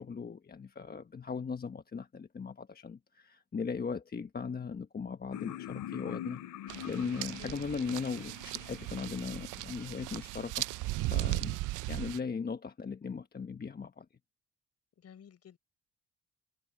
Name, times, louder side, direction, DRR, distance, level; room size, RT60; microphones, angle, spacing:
voice 1, 0.0-6.4 6.8-10.7 11.0-11.6 11.9-14.0, left 5 dB, 30° left, 1.2 m, -38 dB
sound 1, 5.3-10.0, left 12 dB, 85° left, 2.4 m, -44 dB
sound 2, 6.7-12.2, right 19 dB, 85° right, 0.5 m, -37 dB
voice 2, 15.0-15.6, left 8 dB, 55° left, 4.9 m, -53 dB
cardioid pair, 90°, 30 cm